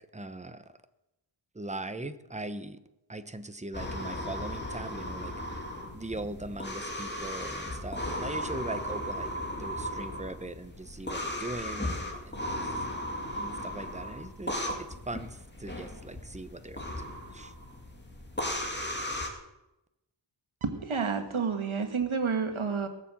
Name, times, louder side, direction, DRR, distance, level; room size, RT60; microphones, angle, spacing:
voice 1, 0.1-0.6 1.5-2.8 3.1-5.6 5.9-9.3 9.6-12.7 13.3-17.5, right 2 dB, 15° right, 11 dB, 0.9 m, -40 dB
sound 1, 3.7-19.3, left 1 dB, 20° left, 2.6 m, -36 dB
voice 2, 20.6-22.9, right 5 dB, 90° right, 7 dB, 1.7 m, -30 dB
18.5 x 7.3 x 7.6 m, 0.94 s
wide cardioid pair, 85°, 47 cm